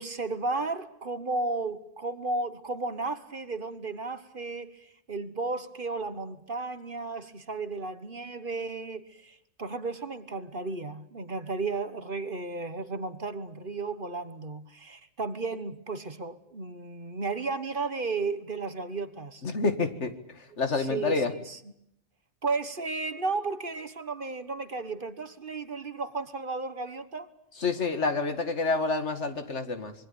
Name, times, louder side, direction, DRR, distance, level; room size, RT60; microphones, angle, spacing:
voice 1, 0.0-19.4 20.8-21.6 22.4-27.3, right 3 dB, 45° right, 11 dB, 1.5 m, -34 dB
voice 2, 19.4-21.3 27.6-29.9, left 3 dB, 65° left, 8 dB, 2.2 m, -28 dB
26.0 x 22.5 x 8.6 m, 0.74 s
omnidirectional pair, 1.3 m